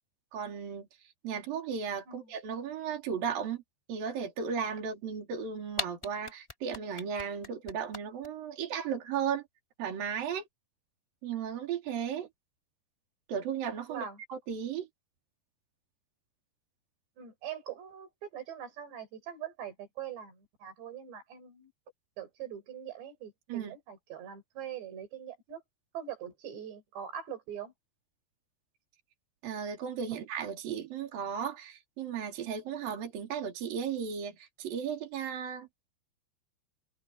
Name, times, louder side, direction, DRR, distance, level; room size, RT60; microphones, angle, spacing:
voice 1, 0.3-3.6 3.9-9.4 9.8-10.4 11.2-12.3 13.3-14.9 23.5-23.8 29.4-35.7, right 7 dB, 55° right, 5.3 m, -35 dB
sound 1, 5.4-5.5 5.7-8.3, left 1 dB, 10° left, 2.1 m, -37 dB
voice 2, 17.2-21.7 22.2-25.6 25.9-27.7, right 9 dB, 85° right, 7.3 m, -42 dB
omnidirectional pair, 4.8 m